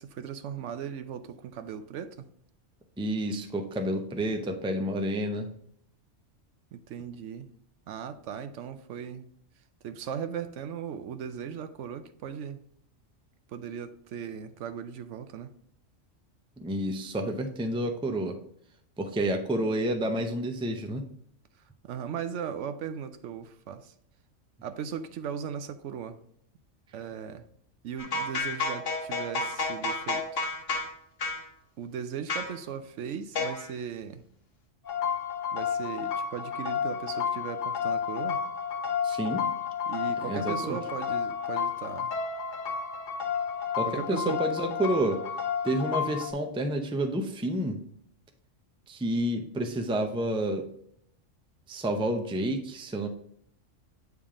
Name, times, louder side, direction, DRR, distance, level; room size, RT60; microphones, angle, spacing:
voice 1, 0.0-2.3 6.7-7.5 7.9-9.3 9.8-12.6 13.5-15.5 21.8-23.9 24.6-26.3 26.9-27.5 27.8-30.4 31.8-34.2 35.5-38.4 39.9-42.1 43.8-44.4, right 8 dB, 70° right, 10 dB, 0.9 m, -37 dB
voice 2, 3.0-5.5 16.6-18.4 19.0-21.1 39.0-39.4 40.2-40.8 43.8-45.2 45.6-47.8 48.9-50.6 51.7-53.1, right 1 dB, 10° right, 5 dB, 0.4 m, -29 dB
sound 1, 28.0-30.9 31.2-31.5 32.3-32.6 33.4-33.7, left 3 dB, 50° left, 1.2 m, -31 dB
sound 2, 34.8-46.3, left 7 dB, 75° left, 1.3 m, -31 dB
8.7 x 3.5 x 3.6 m, 0.68 s
omnidirectional pair, 1.3 m